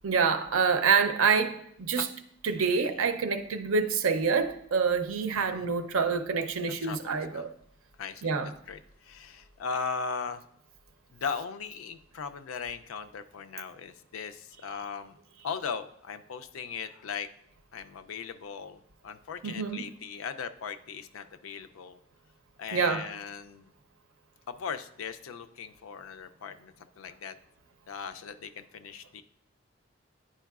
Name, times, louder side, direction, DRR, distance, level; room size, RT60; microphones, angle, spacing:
voice 1, 0.0-2.1 2.4-7.5 8.2-8.5 19.4-19.9 22.7-23.1, right 5 dB, 90° right, 0.6 m, -27 dB
voice 2, 2.6-3.1 5.4-5.7 6.7-7.5 8.0-8.3 8.7-10.4 11.1-15.1 15.4-17.3 17.7-22.0 22.6-23.7 24.5-27.3 27.9-29.2, left 6 dB, 85° left, 0.4 m, -38 dB
10.0 x 4.6 x 2.3 m
head